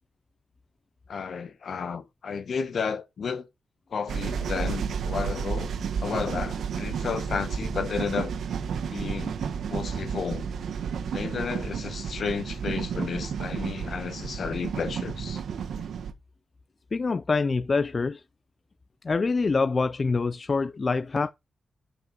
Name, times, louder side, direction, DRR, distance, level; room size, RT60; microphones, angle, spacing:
voice 1, 1.1-3.5 3.9-5.7 6.0-8.4 8.9-9.3 9.7-10.5 11.1-15.4, left 6 dB, 70° left, 1.5 m, -32 dB
sound 1, 4.1-16.1, right 7 dB, 85° right, 1.4 m, -32 dB
voice 2, 16.9-18.2 19.0-21.3, left 4 dB, 45° left, 0.5 m, -25 dB
10.5 x 5.6 x 4.5 m
cardioid pair, 65°, 0 cm